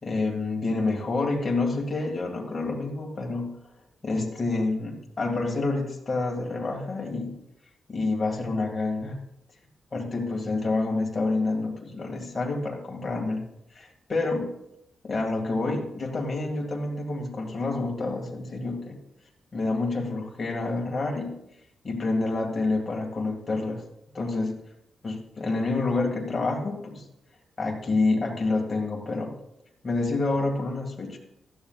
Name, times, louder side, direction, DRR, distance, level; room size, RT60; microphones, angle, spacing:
voice 1, 0.0-3.5 4.0-7.4 7.9-9.2 9.9-13.5 13.7-14.5 15.0-19.0 19.5-21.4 21.8-23.8 24.1-24.6 25.0-27.1 27.6-29.3 29.8-31.2, left 3 dB, 30° left, 0 dB, 2.1 m, -28 dB
15.5 x 12.5 x 2.4 m, 0.82 s
wide cardioid pair, 150°, 0 cm